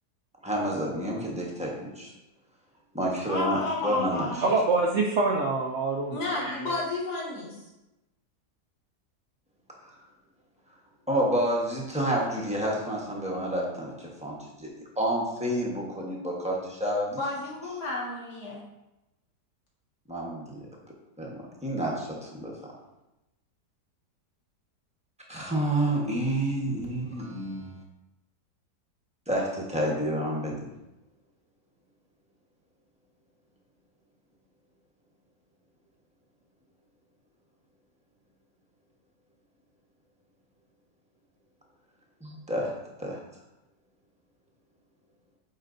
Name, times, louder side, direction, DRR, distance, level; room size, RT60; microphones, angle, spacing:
voice 1, 0.4-2.1 2.9-4.3 9.8-9.9 11.1-14.7 15.0-17.2 20.1-20.6 21.2-22.5 25.3-27.7 29.3-30.7 42.2-42.7 43.0-43.2, right 1 dB, 5° right, -2 dB, 0.9 m, -29 dB
voice 2, 3.3-4.5 6.1-7.7 17.2-18.6, left 3 dB, 70° left, -4 dB, 2.1 m, -32 dB
voice 3, 4.4-6.8, right 3 dB, 60° right, 0 dB, 0.7 m, -26 dB
8.5 x 4.9 x 2.6 m, 0.94 s
omnidirectional pair, 1.8 m